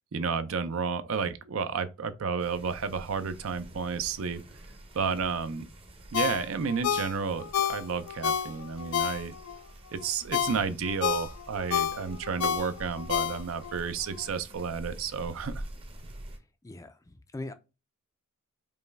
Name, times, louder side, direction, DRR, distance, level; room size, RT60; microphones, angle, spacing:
voice 1, 0.1-4.4 4.9-5.7 6.1-9.3 9.9-15.5, right 5 dB, 65° right, 0.5 m, -31 dB
sound 1, 2.4-16.4, right 1 dB, 25° right, 0.7 m, -47 dB
Ringtone, 6.1-9.6 10.0-13.8 14.1-14.2, left 8 dB, 85° left, 0.4 m, -30 dB
voice 2, 16.3-17.5, left 2 dB, 15° left, 0.4 m, -42 dB
5.3 x 2.2 x 3.4 m
head